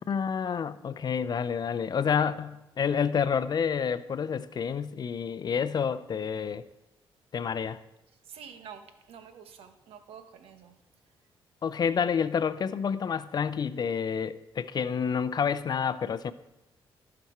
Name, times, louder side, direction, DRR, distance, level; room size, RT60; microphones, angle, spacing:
voice 1, 0.1-6.6 7.3-7.8 11.6-16.3, left 7 dB, 45° left, 14 dB, 0.5 m, -29 dB
voice 2, 8.2-10.8, right 7 dB, 90° right, 7 dB, 1.0 m, -48 dB
15.0 x 6.0 x 4.4 m, 0.96 s
cardioid pair, 95°, 10 cm